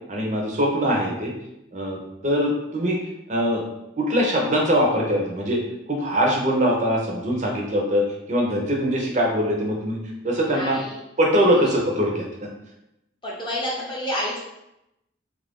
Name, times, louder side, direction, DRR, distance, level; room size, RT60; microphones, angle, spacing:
voice 1, 0.1-1.3 1.7-3.0 3.3-3.7 4.0-5.6 5.9-10.0 10.2-10.8 11.2-12.5, equal, 40° right, -1 dB, 0.7 m, -22 dB
voice 2, 10.4-11.0 11.5-11.7 13.2-14.4, equal, 25° left, -5 dB, 0.7 m, -29 dB
3.2 x 2.5 x 3.5 m, 0.87 s
head